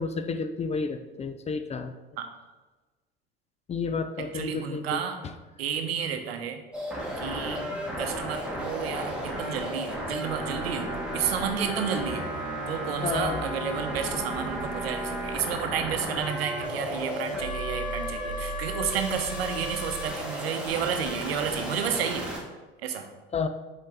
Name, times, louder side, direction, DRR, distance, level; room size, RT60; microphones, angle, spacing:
voice 1, 0.0-1.9 3.7-5.3 13.0-13.4 23.3-23.5, left 5 dB, 20° left, 9 dB, 0.4 m, -31 dB
voice 2, 4.3-5.2 5.6-6.6 7.2-7.6 8.0-12.3 12.7-22.3 22.8-23.1, right 7 dB, 75° right, 6 dB, 0.8 m, -31 dB
sound 1, 6.7-22.4, equal, 5° right, 1.6 m, -33 dB
7.4 x 4.3 x 3.4 m, 1.2 s
hypercardioid pair, 70°, 31 cm